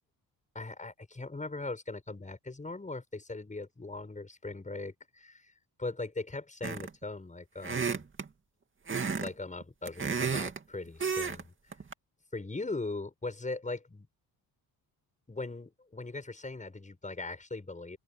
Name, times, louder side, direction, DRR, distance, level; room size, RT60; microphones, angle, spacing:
voice 1, 0.5-5.5 5.8-8.0 9.2-11.5 12.3-14.1 15.3-18.0, left 3 dB, 20° left, 7.4 m, -39 dB
sound 1, 6.6-7.0 7.6-8.3 8.9-9.3 9.6-10.6 11.0-11.4 11.7-11.9, right 5 dB, 30° right, 2.4 m, -32 dB
open air
cardioid pair, 105°, 40 cm